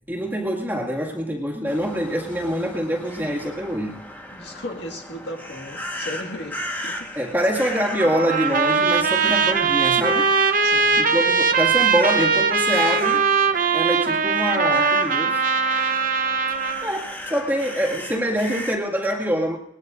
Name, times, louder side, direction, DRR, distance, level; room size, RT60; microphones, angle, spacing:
voice 1, 0.1-4.0 7.2-10.3 11.0-13.2 13.7-15.4 16.8-19.6, equal, 10° right, -2 dB, 2.1 m, -25 dB
sound 1, 1.6-18.8, left 1 dB, 10° left, 1.5 m, -37 dB
voice 2, 4.3-7.2 7.5-7.6 10.6-11.0, left 1 dB, 60° left, 2 dB, 2.0 m, -36 dB
Trumpet, 8.0-16.9, right 5 dB, 45° right, 0.9 m, -20 dB
20.5 x 20.0 x 2.6 m, 0.81 s
head